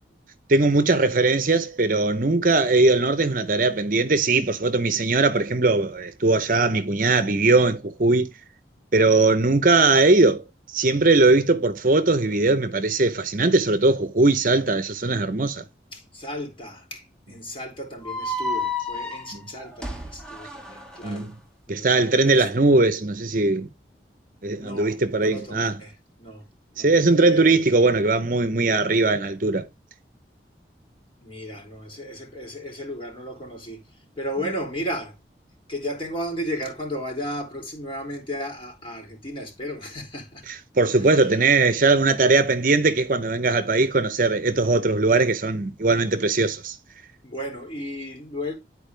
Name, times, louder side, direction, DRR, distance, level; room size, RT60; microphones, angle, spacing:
voice 1, 0.5-8.3 8.9-15.6 19.3-19.4 21.0-21.3 21.7-23.7 24.4-25.8 26.8-29.6 40.7-46.8, right 3 dB, 50° right, 0.8 m, -20 dB
voice 2, 15.9-21.4 21.7-22.4 24.6-26.5 26.7-27.5 31.2-33.8 34.2-35.2 35.7-40.4 41.0-41.3 47.2-48.5, equal, 30° left, 3.1 m, -34 dB
sound 1, 18.0-21.2, left 2 dB, 5° left, 1.4 m, -31 dB
11.0 x 4.5 x 3.3 m
head